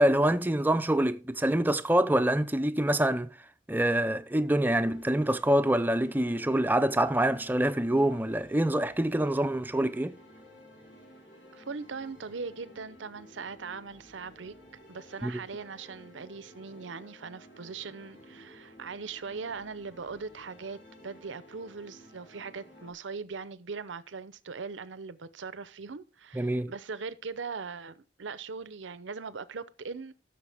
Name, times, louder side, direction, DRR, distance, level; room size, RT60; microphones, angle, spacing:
voice 1, 0.0-3.3 3.7-10.2 15.2-15.3 26.3-26.7, right 1 dB, 10° right, 0.5 m, -25 dB
sound 1, 4.7-22.9, equal, 70° left, 3.4 m, -54 dB
voice 2, 11.5-14.5 14.9-30.1, right 5 dB, 90° right, 0.7 m, -40 dB
14.5 x 6.5 x 3.5 m
head